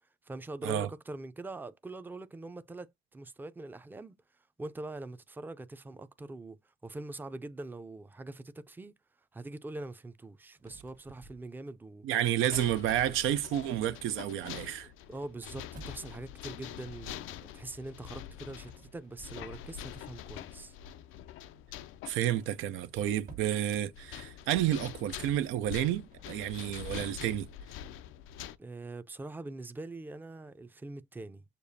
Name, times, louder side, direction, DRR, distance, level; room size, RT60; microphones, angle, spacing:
voice 1, 0.2-4.1 4.6-6.6 6.8-8.9 9.3-12.1 15.1-20.7 28.6-31.4, right 2 dB, 10° right, 0.4 m, -43 dB
sound 1, 10.5-12.0 12.7-13.1 14.2-16.1 18.6-20.1 20.6-20.9 21.6-21.7 21.9-22.0 22.3-23.9 26.0-27.3, right 3 dB, 45° right, 1.3 m, -55 dB
voice 2, 12.0-14.9 22.1-27.5, right 12 dB, 90° right, 0.5 m, -30 dB
sound 2, 12.5-28.6, left 10 dB, 90° left, 0.4 m, -45 dB
6.7 x 2.4 x 2.6 m
cardioid pair, 90°, 20 cm